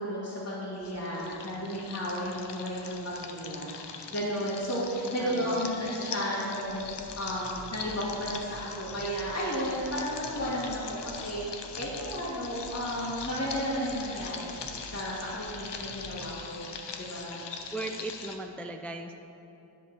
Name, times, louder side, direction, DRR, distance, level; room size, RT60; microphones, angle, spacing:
voice 1, 0.0-14.6 14.9-17.4, equal, 30° left, -10 dB, 1.9 m, -33 dB
sound 1, 0.8-18.4, left 5 dB, 60° left, 0.8 m, -42 dB
voice 2, 5.2-5.8 17.7-19.1, right 2 dB, 5° left, 4 dB, 0.3 m, -37 dB
sound 2, 6.6-16.3, right 1 dB, 65° right, 1.7 m, -50 dB
10.0 x 5.2 x 6.0 m, 2.9 s
wide cardioid pair, 115°, 46 cm